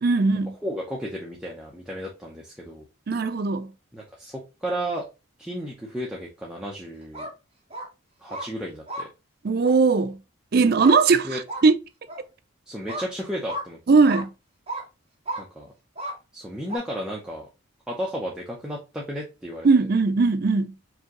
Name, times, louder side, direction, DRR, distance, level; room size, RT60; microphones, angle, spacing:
voice 1, 0.0-0.5 3.1-3.7 9.4-10.2 10.5-11.7 13.9-14.3 19.6-20.7, right 4 dB, 50° right, 0.4 m, -19 dB
voice 2, 0.6-2.8 3.9-5.1 5.4-7.3 8.2-9.1 11.2-11.4 12.7-13.8 15.4-15.7 16.3-17.5 17.9-19.9, equal, 5° right, 0.7 m, -33 dB
sound 1, 7.0-7.3 7.7-7.9 8.3-8.5 8.9-9.1 9.6-9.8 10.8-11.0 11.5-11.6 12.1-12.2 12.9-13.1 13.5-13.6 14.1-14.3 14.7-14.8 15.3-15.4 15.9-16.2 16.7-16.8, right 1 dB, 30° right, 1.1 m, -33 dB
4.7 x 2.9 x 2.9 m
head